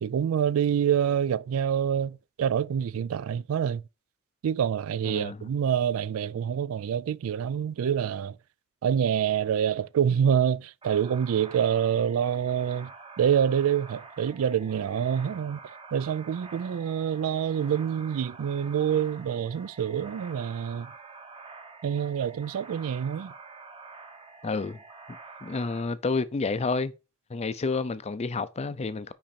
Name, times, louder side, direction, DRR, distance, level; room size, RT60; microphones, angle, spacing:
voice 1, 0.0-3.8 4.4-8.4 8.8-12.9 13.2-15.6 15.9-20.9 21.8-23.3, right 8 dB, 75° right, 0.3 m, -26 dB
voice 2, 5.0-5.5 24.4-24.8 25.1-26.9 27.3-29.1, left 4 dB, 30° left, 0.5 m, -30 dB
sound 1, 10.8-25.8, right 4 dB, 25° right, 0.9 m, -47 dB
5.9 x 5.0 x 4.2 m
head